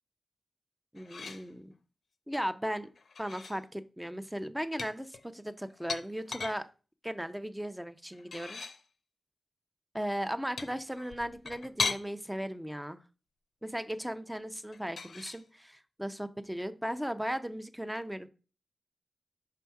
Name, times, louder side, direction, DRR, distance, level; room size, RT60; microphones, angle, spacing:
voice 1, 0.9-1.8 2.3-2.9 3.2-6.7 7.0-8.6 9.9-13.0 13.6-18.3, equal, 5° right, 11 dB, 0.5 m, -37 dB
sound 1, 1.0-1.5 3.0-3.6 4.8-6.6 8.1-8.8 10.6-12.1 14.7-15.4, left 4 dB, 75° left, 0.6 m, -38 dB
5.9 x 3.4 x 4.6 m, 0.34 s
wide cardioid pair, 100°, 0 cm